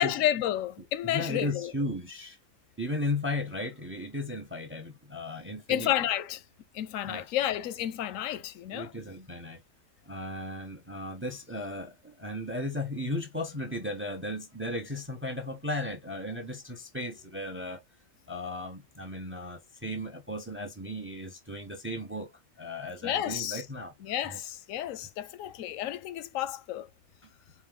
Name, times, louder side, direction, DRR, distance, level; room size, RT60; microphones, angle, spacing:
voice 1, 0.0-1.7 5.7-6.4 6.7-8.9 23.0-23.6 24.0-26.9, left 12 dB, 90° left, 1.0 m, -31 dB
voice 2, 1.0-2.4 2.8-5.9 7.0-7.2 8.7-9.6 10.1-17.8 18.3-22.3 22.6-23.9 24.2-24.4 27.2-27.3, left 1 dB, 15° right, 0.5 m, -35 dB
4.5 x 2.5 x 3.7 m
omnidirectional pair, 1.3 m